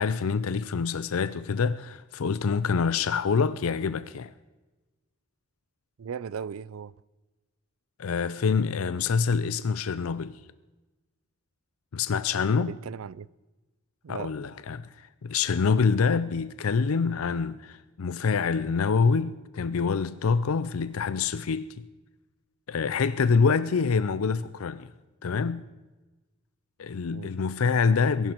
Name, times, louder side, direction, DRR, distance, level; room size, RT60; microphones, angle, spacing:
voice 1, 0.0-4.3 8.0-10.4 11.9-12.7 14.1-14.9 15.2-21.7 22.7-24.9 25.2-25.6 26.8-28.3, left 5 dB, 85° left, 0.5 m, -26 dB
voice 2, 6.0-6.9 12.5-13.3 14.0-14.3 27.1-27.3, right 6 dB, 80° right, 0.4 m, -37 dB
21.0 x 11.5 x 4.5 m
head